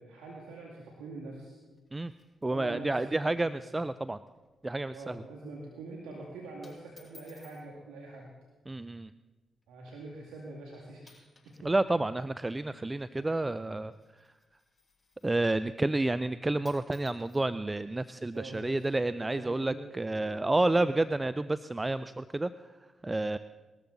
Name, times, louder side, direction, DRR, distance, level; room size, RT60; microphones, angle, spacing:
voice 1, 0.0-1.6 2.5-3.8 4.9-8.3 9.7-11.2 11.4-11.7 13.1-13.4 18.3-20.8 22.0-22.1, right 3 dB, 80° right, -2 dB, 2.1 m, -45 dB
sound 1, 1.6-2.9 3.2-3.3 3.6-3.8 4.2-4.5 4.9-5.1 5.9-6.1 6.6-7.7 8.7-9.0 9.6-9.7 10.4-10.7 11.0-11.7 11.9-15.5 16.3-16.4 16.6-18.9, left 3 dB, 35° left, 6.4 m, -62 dB
voice 2, 2.4-4.2 4.6-5.2 8.7-9.1 11.6-13.9 15.2-22.5 23.0-23.4, right 2 dB, 25° right, 14 dB, 0.5 m, -30 dB
20.5 x 13.5 x 4.0 m, 1.2 s
hypercardioid pair, 40°, 0 cm